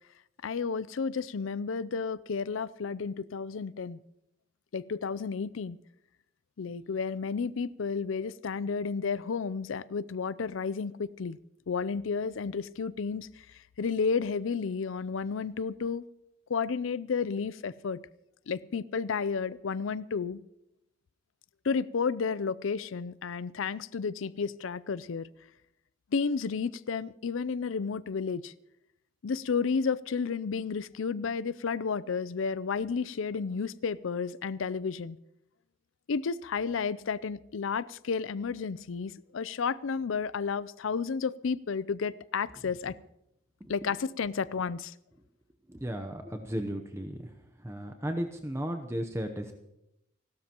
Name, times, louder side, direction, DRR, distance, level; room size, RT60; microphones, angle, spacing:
voice 1, 0.4-4.0 4.7-5.8 6.6-11.4 11.7-13.3 13.8-16.0 16.5-18.0 18.5-20.4 21.6-25.3 26.1-28.5 29.2-35.2 36.1-43.0 43.7-44.9, left 5 dB, 75° left, 18 dB, 0.5 m, -32 dB
voice 2, 45.7-47.2 47.6-49.5, equal, 15° right, 6 dB, 0.7 m, -34 dB
29.5 x 12.5 x 3.0 m, 0.83 s
head